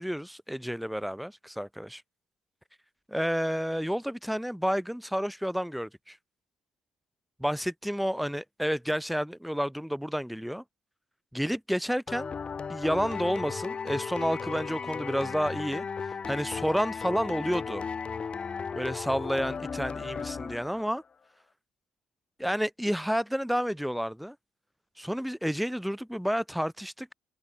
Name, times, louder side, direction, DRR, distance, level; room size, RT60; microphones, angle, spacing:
voice 1, 0.0-2.0 3.1-6.2 7.4-10.6 11.3-12.3 12.7-17.8 18.7-21.0 22.4-24.3 25.0-27.1, equal, ahead, 3.2 m, -30 dB
sound 1, 12.1-21.0, left 5 dB, 40° left, 3.2 m, -35 dB
open air
supercardioid pair, 65°, 3 cm